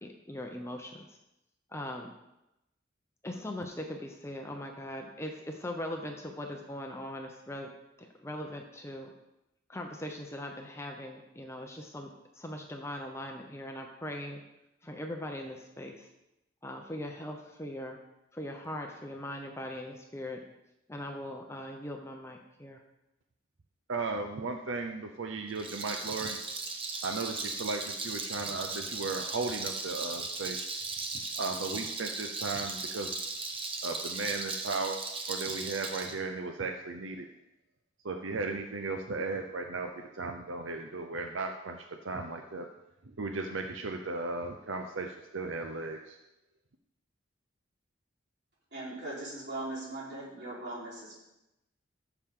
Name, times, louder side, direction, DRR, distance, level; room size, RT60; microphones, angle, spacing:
voice 1, 0.0-1.0 1.7-2.1 3.2-7.7 8.0-9.1 9.7-12.1 12.3-14.4 14.8-16.1 16.6-18.0 18.3-20.4 20.9-22.8, left 1 dB, 15° left, 2 dB, 0.8 m, -40 dB
voice 2, 23.9-26.4 27.0-30.7 31.4-33.2 33.8-35.0 35.3-37.3 38.0-42.7 43.0-46.2, right 3 dB, 85° right, 4 dB, 0.7 m, -36 dB
Rattle, 25.5-36.1, right 3 dB, 30° right, 0.9 m, -37 dB
voice 3, 48.7-51.1, right 2 dB, 55° right, -7 dB, 4.3 m, -39 dB
14.0 x 7.1 x 3.8 m, 0.91 s
head